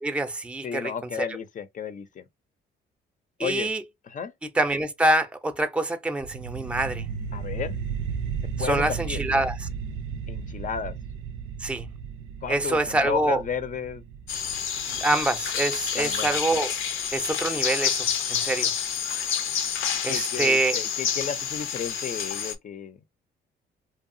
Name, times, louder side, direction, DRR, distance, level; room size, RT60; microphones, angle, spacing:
voice 1, 0.0-0.9 3.4-3.8 4.6-7.0 8.6-9.7 11.6-11.9 12.5-13.4 15.0-16.7 17.1-18.7 20.0-20.8, right 2 dB, 5° right, 0.5 m, -25 dB
voice 2, 0.6-2.2 3.4-3.7 4.0-4.3 7.3-7.8 8.6-9.2 10.3-10.9 12.4-14.0 15.9-16.3 20.1-23.0, left 7 dB, 40° left, 0.5 m, -33 dB
sound 1, 6.2-17.2, right 6 dB, 90° right, 0.5 m, -35 dB
sound 2, 14.3-22.5, left 8 dB, 80° left, 0.7 m, -28 dB
2.7 x 2.3 x 2.6 m
cardioid pair, 90°, 20 cm